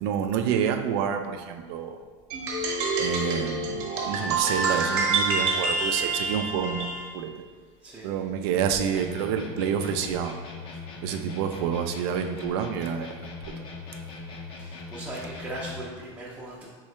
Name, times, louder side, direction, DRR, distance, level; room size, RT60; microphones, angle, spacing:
voice 1, 0.0-2.0 3.0-7.3 8.0-10.4 11.0-13.1, right 8 dB, 65° right, 6 dB, 0.4 m, -28 dB
sound 1, 2.3-7.1, right 3 dB, 45° right, 1.0 m, -27 dB
voice 2, 7.8-8.5 14.6-16.7, right 1 dB, 10° right, -6 dB, 0.6 m, -39 dB
sound 2, 8.9-15.9, left 3 dB, 40° left, 0.7 m, -40 dB
4.4 x 3.8 x 3.2 m, 1.5 s
supercardioid pair, 145°, 14 cm